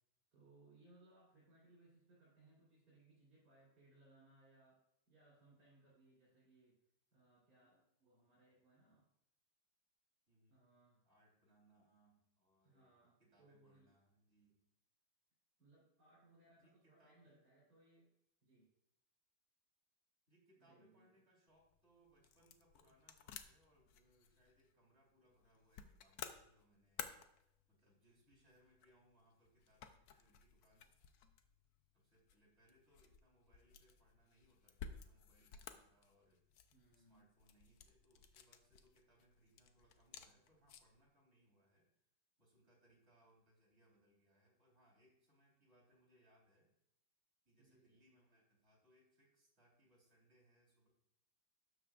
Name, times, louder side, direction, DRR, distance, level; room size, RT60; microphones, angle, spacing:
voice 1, 0.3-6.8 7.1-9.1 10.5-11.1 11.8-11.9 12.6-13.9 15.6-18.1 18.4-18.7 20.6-21.1 36.7-37.3 47.6-48.0, right 2 dB, 55° right, -8 dB, 4.1 m, -68 dB
voice 2, 10.3-10.6 11.0-12.9 13.2-14.6 16.4-17.4 20.3-30.9 31.9-41.9 42.4-46.7 47.4-50.9, right 1 dB, 30° right, -4 dB, 4.1 m, -73 dB
sound 1, 21.5-41.0, left 7 dB, 65° left, 0.9 m, -57 dB
12.0 x 9.2 x 2.5 m, 0.77 s
omnidirectional pair, 2.3 m